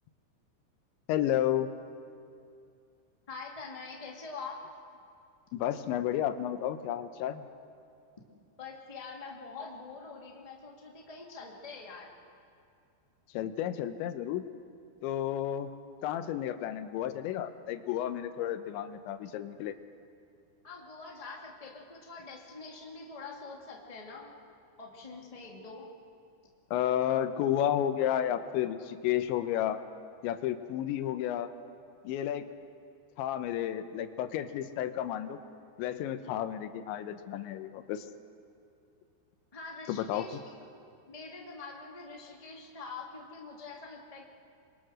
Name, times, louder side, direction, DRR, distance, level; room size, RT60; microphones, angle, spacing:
voice 1, 1.1-1.7 5.5-7.5 13.3-14.5 15.0-15.7 16.0-19.7 26.7-29.8 30.2-31.5 32.0-32.5 33.2-35.4 35.8-38.1 39.9-40.3, left 11 dB, 80° left, 10 dB, 3.2 m, -32 dB
voice 2, 3.3-4.6 8.6-12.1 20.6-24.3 24.8-25.9 39.5-40.4 40.7-40.8 41.1-44.3, left 4 dB, 20° left, -2 dB, 1.0 m, -45 dB
27.0 x 22.5 x 6.4 m, 2.5 s
omnidirectional pair, 5.3 m